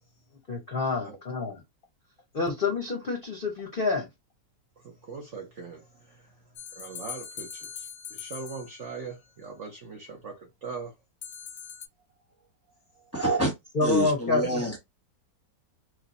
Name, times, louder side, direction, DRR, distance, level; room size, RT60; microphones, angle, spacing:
voice 1, 0.5-1.6 2.3-4.1 13.7-14.6, left 3 dB, 45° left, 0.7 m, -28 dB
voice 2, 4.8-11.0 12.9-13.1 14.4-14.7, right 5 dB, 60° right, 0.8 m, -41 dB
sound 1, 6.6-9.1 11.2-11.9, left 8 dB, 85° left, 0.5 m, -41 dB
voice 3, 13.1-13.5 13.8-14.8, right 1 dB, 10° left, 0.9 m, -26 dB
3.1 x 2.5 x 4.0 m
omnidirectional pair, 1.8 m